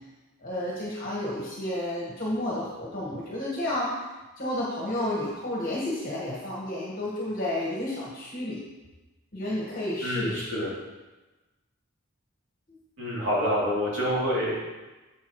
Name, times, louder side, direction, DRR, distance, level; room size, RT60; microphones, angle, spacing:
voice 1, 0.4-3.9 4.4-8.6 9.3-10.7, left 1 dB, 40° left, -6 dB, 1.6 m, -31 dB
voice 2, 10.0-10.7 13.0-14.7, equal, 60° right, -7 dB, 3.0 m, -27 dB
9.3 x 7.1 x 3.2 m, 1.1 s
head